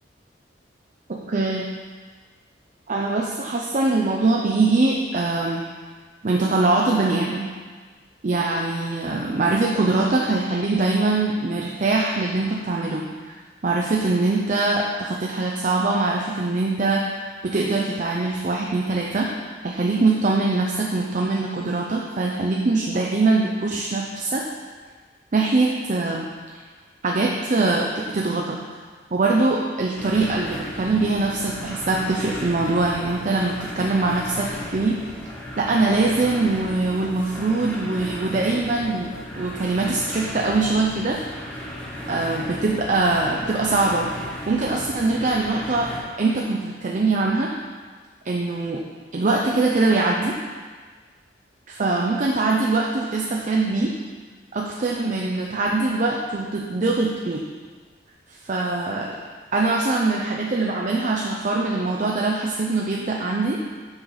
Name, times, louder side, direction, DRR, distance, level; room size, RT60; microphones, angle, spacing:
voice 1, 1.3-1.6 2.9-5.6 6.2-7.5 8.2-13.4 13.6-19.3 19.6-24.4 25.3-26.3 27.0-28.6 29.1-35.0 35.6-39.1 39.3-41.2 42.1-44.1 44.5-45.9 46.2-47.5 48.2-48.8 49.1-50.3 51.7-53.9 54.5-57.4 58.3-59.1 59.5-63.6, right 3 dB, 45° right, -1 dB, 0.5 m, -22 dB
sound 1, 30.0-46.0, left 1 dB, 10° left, 1.3 m, -36 dB
6.4 x 5.7 x 4.7 m, 1.5 s
head